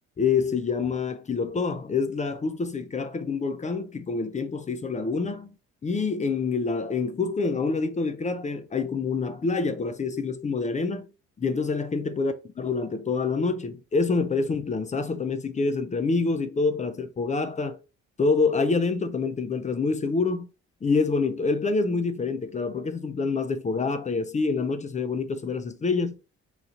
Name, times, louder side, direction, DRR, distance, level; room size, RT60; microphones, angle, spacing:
voice 1, 0.2-5.5 5.8-11.1 11.4-17.8 18.2-20.5 20.8-26.2, left 4 dB, 25° left, 0.4 m, -26 dB
3.0 x 2.7 x 3.7 m
cardioid pair, 90°, 30 cm